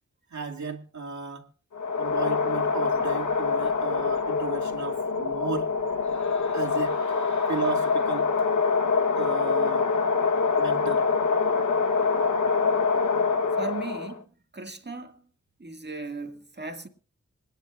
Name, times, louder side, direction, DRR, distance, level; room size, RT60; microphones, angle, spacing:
voice 1, 0.3-1.5 2.0-5.7 6.5-7.0 7.5-8.3 9.2-9.9 10.6-11.1, right 5 dB, 70° right, 2.3 m, -34 dB
sound 1, 1.7-14.2, left 5 dB, 90° left, 1.1 m, -25 dB
sound 2, 6.0-8.7, left 1 dB, 70° left, 2.4 m, -42 dB
voice 2, 13.5-15.3 15.6-16.9, right 3 dB, 35° right, 2.0 m, -37 dB
26.5 x 10.0 x 2.4 m
cardioid pair, 45°, 29 cm